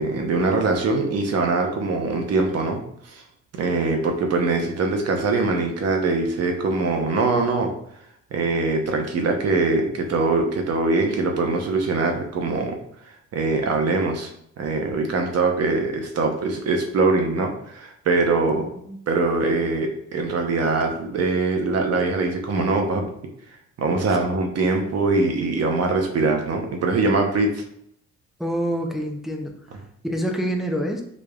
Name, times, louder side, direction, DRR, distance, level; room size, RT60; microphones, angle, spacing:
voice 1, 0.0-2.8 3.1-3.2 3.6-7.7 8.3-12.7 13.3-14.3 14.6-18.7 19.1-23.1 23.8-27.6, right 3 dB, 55° right, 3 dB, 0.8 m, -22 dB
voice 2, 18.5-19.0 28.4-29.5 30.0-31.0, equal, ahead, 2 dB, 0.5 m, -27 dB
5.0 x 2.5 x 2.3 m, 0.71 s
cardioid pair, 90°, 30 cm